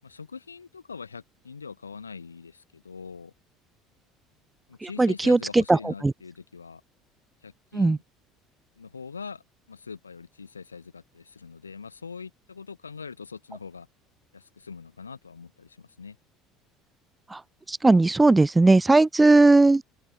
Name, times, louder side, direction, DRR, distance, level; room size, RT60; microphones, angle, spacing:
voice 1, 0.0-3.3 4.7-6.8 7.4-8.0 8.8-13.9 14.3-16.2, left 5 dB, 85° left, 8.0 m, -42 dB
voice 2, 5.0-6.1 7.7-8.0 17.3-17.4 17.7-19.8, right 2 dB, 15° right, 0.9 m, -18 dB
open air
figure-of-eight pair, 60°, 0 cm